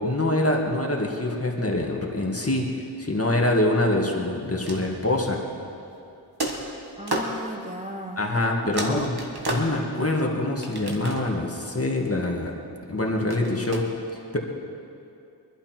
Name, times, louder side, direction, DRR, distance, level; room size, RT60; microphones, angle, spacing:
voice 1, 0.0-2.7 3.0-5.4 8.2-9.2 9.5-12.5 12.9-13.9 14.3-14.4, left 1 dB, 35° left, 0 dB, 2.0 m, -25 dB
sound 1, 4.4-5.3 6.4-7.4 8.3-8.4 8.7-10.1 10.6-11.5 13.3-13.8, right 2 dB, 65° right, 1.8 m, -32 dB
voice 2, 7.0-8.2 8.6-9.1, equal, 15° right, 1 dB, 1.2 m, -34 dB
23.5 x 11.5 x 4.5 m, 2.6 s
wide cardioid pair, 40°, 41 cm